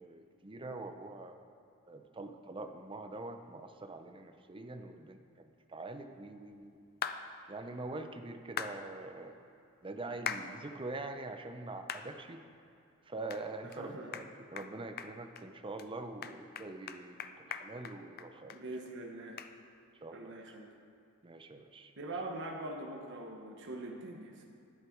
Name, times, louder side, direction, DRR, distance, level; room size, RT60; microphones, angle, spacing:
voice 1, 0.0-1.4 1.9-6.8 7.5-9.3 9.8-12.4 13.1-18.6 20.0-20.5 21.2-21.9, right 2 dB, 25° right, 6 dB, 0.6 m, -44 dB
sound 1, 7.0-7.2 8.6-8.7 10.3-10.5 11.0-11.1 11.9-12.1 12.5-12.6 13.3-13.4 13.7-13.8 14.1-14.3 14.6-14.7 15.0-15.4 15.8-15.9 16.2-18.6 18.9-19.0 19.4-19.5, left 8 dB, 45° left, 0.5 m, -39 dB
voice 2, 13.7-14.1 18.5-19.4 20.1-20.7 22.0-24.4, right 2 dB, 60° right, 0 dB, 1.1 m, -43 dB
11.5 x 9.9 x 4.6 m, 2.6 s
head